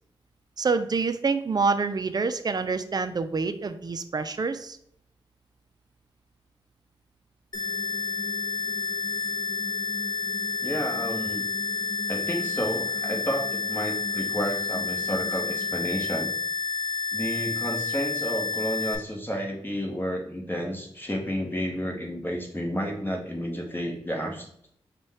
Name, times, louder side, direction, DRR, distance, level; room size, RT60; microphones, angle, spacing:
voice 1, 0.6-4.8, right 4 dB, 45° right, 10 dB, 0.4 m, -27 dB
sound 1, 7.5-15.8, left 3 dB, 70° left, 0.5 m, -42 dB
sound 2, 7.5-18.9, left 4 dB, 45° left, 0.8 m, -30 dB
voice 2, 10.6-11.5 12.1-16.3 17.1-24.5, equal, 20° left, 1 dB, 1.1 m, -31 dB
5.2 x 2.3 x 3.4 m, 0.69 s
cardioid pair, 55°, 10 cm